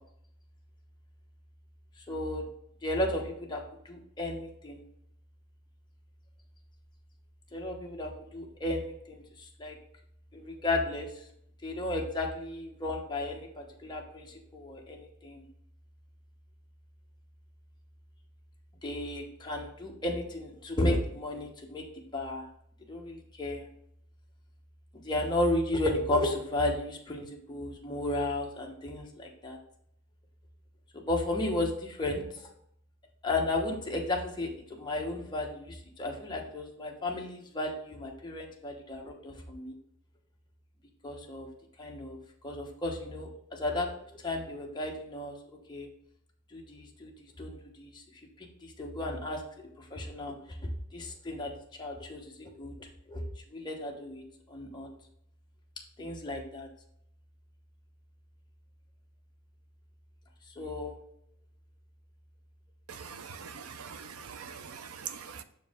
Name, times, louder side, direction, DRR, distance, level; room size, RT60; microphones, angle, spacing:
voice 1, 2.1-2.4 2.8-4.8 7.5-9.8 10.3-11.2 11.6-15.4 18.8-21.8 22.1-22.5 22.9-23.7 25.0-29.6 30.9-32.5 33.2-39.7 41.0-41.5 41.8-42.2 42.4-43.9 44.1-45.3 45.7-45.9 46.5-48.0 48.4-49.4 49.8-50.3 50.9-51.5 51.8-53.2 53.5-54.2 54.5-54.9 56.0-56.7 60.5-61.0, left 1 dB, 20° left, 1.0 m, -34 dB
voice 2, 62.9-65.4, right 7 dB, 75° right, 0.5 m, -43 dB
6.3 x 4.6 x 3.6 m
head